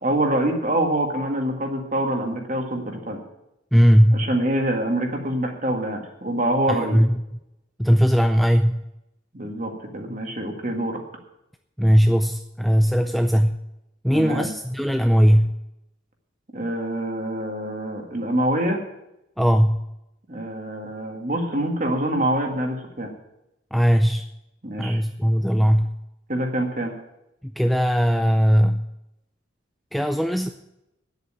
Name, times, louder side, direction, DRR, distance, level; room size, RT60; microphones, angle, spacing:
voice 1, 0.0-3.2 4.1-7.0 9.3-11.0 14.1-14.5 16.5-18.8 20.3-23.1 24.6-25.0 26.3-26.9, right 1 dB, 40° right, 3 dB, 1.9 m, -25 dB
voice 2, 3.7-4.3 6.7-7.2 7.8-8.8 11.8-13.6 14.0-15.5 19.4-19.8 23.7-24.2 24.8-25.9 27.6-28.8 29.9-30.5, equal, ahead, 6 dB, 0.4 m, -18 dB
9.8 x 8.1 x 8.9 m, 0.87 s
head